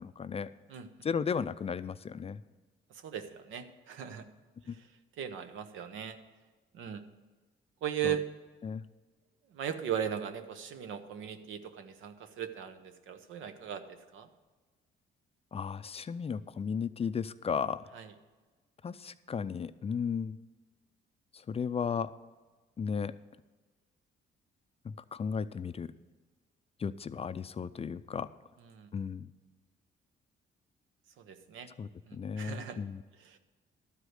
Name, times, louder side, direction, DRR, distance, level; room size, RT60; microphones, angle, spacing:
voice 1, 0.0-0.5 1.0-2.4 4.7-4.8 8.0-8.1 8.6-8.8 15.5-17.8 18.8-20.4 21.5-22.1 22.8-23.1 24.8-25.9 26.8-28.3 28.9-29.3 31.8-33.0, left 6 dB, 30° left, 13 dB, 0.4 m, -35 dB
voice 2, 2.9-4.3 4.7-4.9 5.2-6.2 6.7-7.0 7.8-8.2 9.5-14.3 17.9-18.1 28.7-28.9 31.2-31.7 32.1-32.8 33.2-33.4, right 9 dB, 85° right, 9 dB, 0.9 m, -38 dB
12.5 x 4.9 x 7.9 m, 1.3 s
cardioid pair, 90°, 20 cm